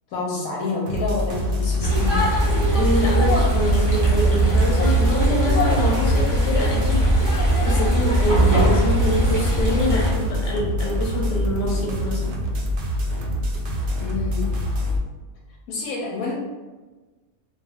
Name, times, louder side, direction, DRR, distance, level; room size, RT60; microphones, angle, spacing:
voice 1, 0.1-2.2 14.0-14.5 15.7-16.3, left 3 dB, 75° left, -3 dB, 1.0 m, -28 dB
sound 1, 0.9-15.0, left 1 dB, 85° right, 0.5 m, -25 dB
sound 2, 1.8-10.1, right 1 dB, 30° right, 0.3 m, -20 dB
voice 2, 2.7-12.2, left 1 dB, 50° left, -2 dB, 0.8 m, -25 dB
2.4 x 2.3 x 3.2 m, 1.2 s
omnidirectional pair, 1.6 m